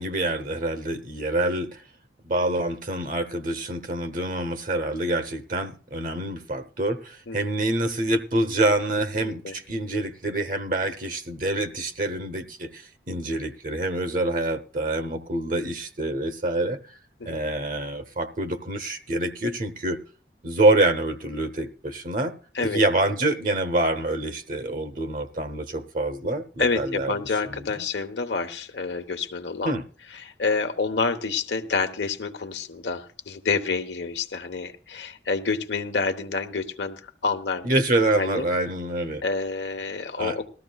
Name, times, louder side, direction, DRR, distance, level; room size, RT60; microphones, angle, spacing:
voice 1, 0.0-1.8 2.2-16.9 17.2-20.0 20.4-22.3 22.7-27.1 27.8-27.9 29.6-29.8 37.6-39.2 40.2-40.4, right 2 dB, 50° right, 0.9 m, -26 dB
voice 2, 9.1-9.6 17.2-17.4 22.5-22.8 26.6-29.7 30.1-37.7 38.1-38.5 39.2-40.5, left 4 dB, 85° left, 1.0 m, -28 dB
19.0 x 13.5 x 2.3 m
head